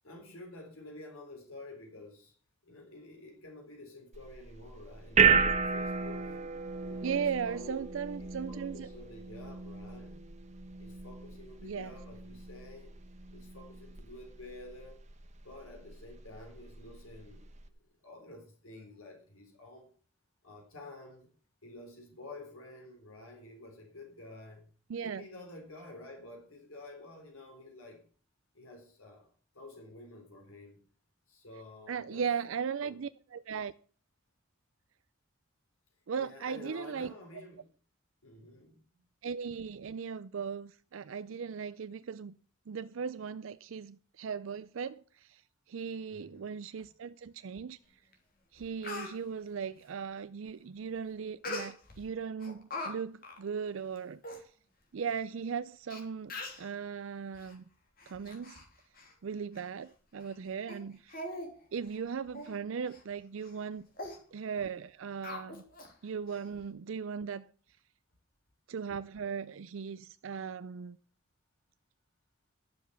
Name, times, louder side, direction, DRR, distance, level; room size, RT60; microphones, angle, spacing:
voice 1, 0.0-2.3 2.6-6.5 6.8-7.9 8.2-10.3 10.8-12.9 13.3-15.0 15.4-17.5 18.0-19.9 20.4-21.3 21.6-24.7 25.0-28.0 28.5-30.8 31.3-32.3 32.8-33.0 36.2-37.7 38.2-39.0 46.1-46.6, left 2 dB, 90° left, 3.7 m, -50 dB
sound 1, 4.1-17.7, right 6 dB, 35° right, 1.1 m, -33 dB
voice 2, 7.0-8.9 11.6-12.0 24.9-25.3 31.9-33.7 36.1-37.1 39.2-42.3 42.7-45.4 45.7-47.8 48.5-54.5 54.9-57.6 58.1-58.6 59.2-61.2 61.7-63.9 64.3-65.6 66.0-67.5 68.7-71.0, right 6 dB, 70° right, 0.4 m, -38 dB
Speech, 48.1-48.2 48.6-49.1 51.4-52.0 52.4-52.9 53.2-53.4 54.0-54.1 54.2-54.4 55.2-55.3 55.9-56.0 56.3-56.7 57.3-57.5 58.0-58.7 59.0-59.1 59.6-59.7 60.2-60.3 60.7-60.8 61.1-61.5 61.8-62.0 62.3-62.5 62.9-63.0 63.4-63.6 64.0-64.2 65.2-65.9 66.3-66.4, left 2 dB, 45° left, 3.1 m, -41 dB
11.5 x 7.3 x 6.9 m
head